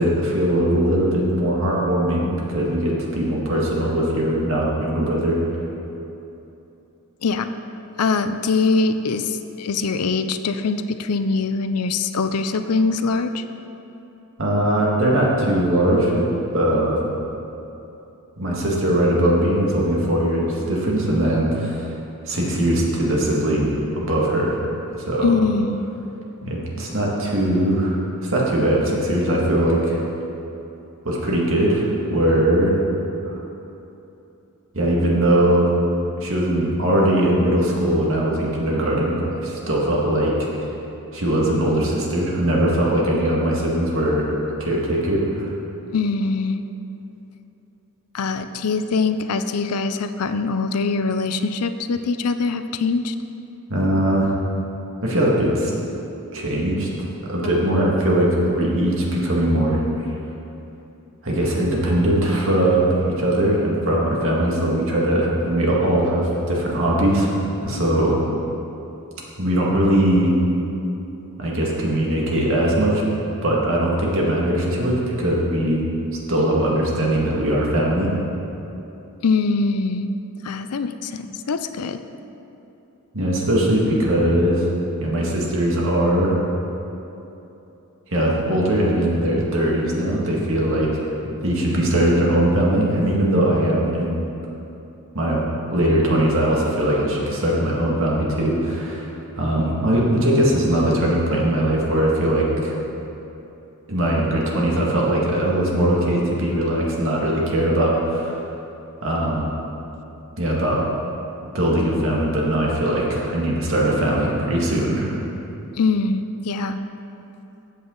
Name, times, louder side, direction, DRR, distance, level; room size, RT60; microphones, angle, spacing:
voice 1, 0.0-5.6 14.4-16.3 16.5-17.0 18.4-21.9 22.2-24.6 24.9-25.3 26.5-30.0 31.0-32.8 33.2-33.4 34.7-35.7 36.2-40.5 41.1-44.3 44.6-45.5 53.7-54.3 55.0-55.7 56.3-56.9 57.3-60.1 61.2-68.2 69.4-70.3 71.4-73.0 73.4-75.8 76.3-78.1 83.1-84.7 85.0-86.3 88.1-91.1 91.4-94.2 95.1-102.8 103.9-108.4 109.0-109.5 110.4-110.8 111.5-115.1, right 1 dB, 60° right, -3 dB, 2.1 m, -20 dB
voice 2, 8.0-13.4 25.2-25.8 26.4-26.5 45.9-46.6 48.1-53.1 79.2-80.1 80.4-82.0 115.8-116.8, left 4 dB, 90° left, 10 dB, 0.5 m, -23 dB
14.0 x 8.0 x 4.0 m, 2.9 s
head